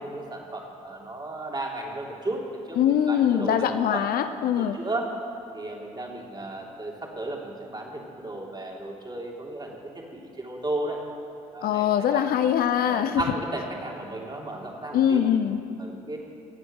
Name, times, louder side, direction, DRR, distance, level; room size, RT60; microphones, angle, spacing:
voice 1, 0.0-3.7 3.9-4.0 4.6-5.1 5.5-11.0 11.5-12.3 12.9-15.3 15.8-16.2, right 2 dB, 25° right, -2 dB, 3.5 m, -34 dB
voice 2, 2.8-4.8 11.6-13.2 14.9-15.6, left 9 dB, 60° left, 10 dB, 0.7 m, -23 dB
17.5 x 7.9 x 7.9 m, 2.5 s
hypercardioid pair, 45°, 17 cm